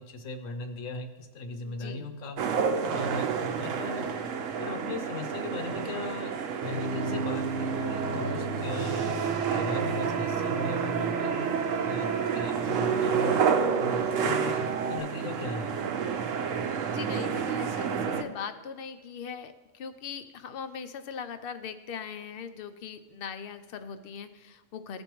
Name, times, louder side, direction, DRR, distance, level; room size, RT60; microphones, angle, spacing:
voice 1, 0.0-2.4 2.9-4.1 4.6-9.2 9.5-11.6 11.8-13.4 13.8-15.8, left 2 dB, 80° left, 7 dB, 1.2 m, -38 dB
voice 2, 1.6-2.1 16.6-25.0, left 7 dB, 60° left, 10 dB, 0.6 m, -40 dB
sound 1, 2.4-18.2, right 6 dB, 85° right, 1.0 m, -30 dB
sound 2, 6.6-15.0, right 4 dB, 60° right, 0.9 m, -33 dB
15.0 x 5.2 x 3.0 m, 1.2 s
omnidirectional pair, 1.3 m